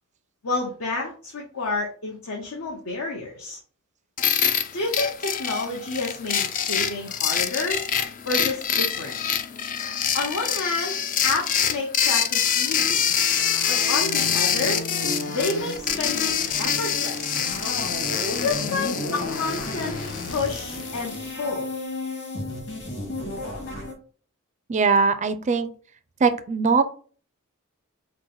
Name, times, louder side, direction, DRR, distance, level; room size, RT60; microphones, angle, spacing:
voice 1, 0.4-3.6 4.7-7.8 8.2-9.2 10.1-13.0 13.7-14.9 15.3-17.4 18.4-20.0 20.3-21.7, left 3 dB, 80° left, -2 dB, 0.9 m, -29 dB
sound 1, 4.2-21.2, left 8 dB, 40° left, 0.4 m, -26 dB
sound 2, 13.1-23.9, left 1 dB, 55° left, 1.9 m, -34 dB
voice 2, 24.7-25.7 26.2-26.8, right 4 dB, 35° right, 11 dB, 0.4 m, -20 dB
4.8 x 2.1 x 3.8 m, 0.41 s
head